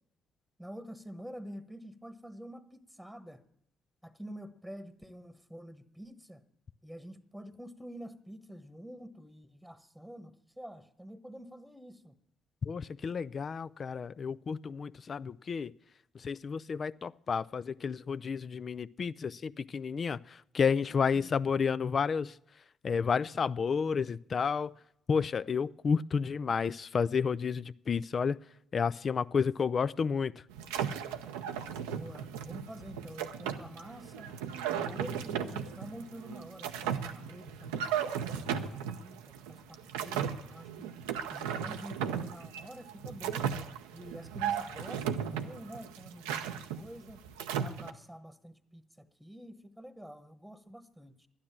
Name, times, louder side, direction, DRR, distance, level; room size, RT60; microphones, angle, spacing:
voice 1, 0.6-3.4 4.0-6.4 6.8-12.1 21.1-21.3 31.8-34.3 34.7-40.9 41.3-43.5 43.9-47.2 47.6-51.3, equal, ahead, 11 dB, 1.2 m, -47 dB
voice 2, 12.6-15.7 16.1-22.3 22.8-24.7 25.1-28.4 28.7-30.3, left 6 dB, 50° left, 17 dB, 0.4 m, -31 dB
sound 1, 30.5-47.9, right 8 dB, 90° right, 0.7 m, -36 dB
12.0 x 9.9 x 7.3 m, 0.74 s
hypercardioid pair, 55°, 0 cm